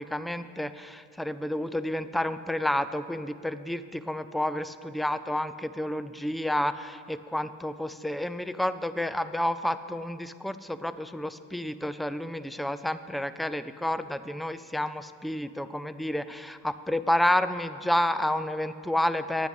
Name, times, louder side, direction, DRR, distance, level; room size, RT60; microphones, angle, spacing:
voice 1, 0.0-19.5, left 1 dB, ahead, 13 dB, 0.4 m, -30 dB
10.5 x 8.1 x 8.3 m, 2.3 s
cardioid pair, 95°, 33 cm